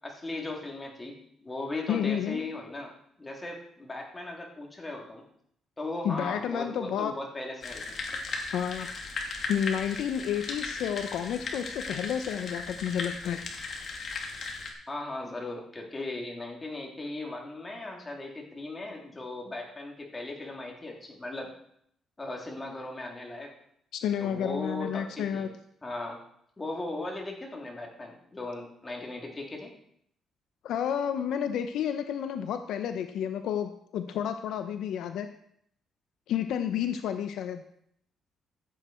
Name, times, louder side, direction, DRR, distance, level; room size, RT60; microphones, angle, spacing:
voice 1, 0.0-2.9 3.2-5.2 5.8-8.0 14.9-21.5 22.2-23.5 24.2-25.5 25.8-26.2 26.6-29.7, left 2 dB, 20° left, 0 dB, 3.4 m, -37 dB
voice 2, 1.9-2.4 6.0-7.1 8.5-8.9 9.5-13.4 23.9-25.5 30.6-35.3 36.3-37.6, left 9 dB, 80° left, 8 dB, 0.8 m, -30 dB
sound 1, 7.6-14.7, left 4 dB, 50° left, 2.5 m, -37 dB
15.0 x 8.3 x 4.5 m, 0.70 s
cardioid pair, 90°, 0 cm